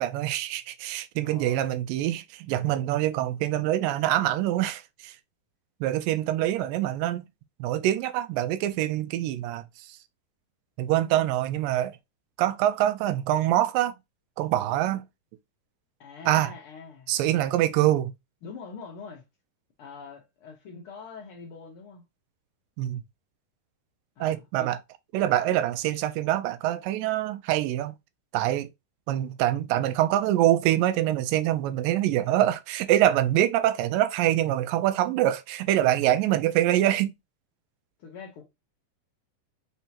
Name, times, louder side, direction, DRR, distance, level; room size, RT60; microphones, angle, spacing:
voice 1, 0.0-5.2 5.8-7.3 7.6-10.0 10.8-12.0 12.4-14.0 14.4-15.0 16.3-16.5 17.1-18.1 22.8-23.0 24.2-24.8 25.1-27.9 28.3-28.7 29.1-37.1, right 13 dB, 90° right, 2.3 m, -25 dB
voice 2, 1.2-1.7 16.0-17.1 18.4-19.2 19.8-22.0 24.2-24.7 38.0-38.4, left 5 dB, 85° left, 1.2 m, -44 dB
5.5 x 3.4 x 2.8 m
omnidirectional pair, 3.9 m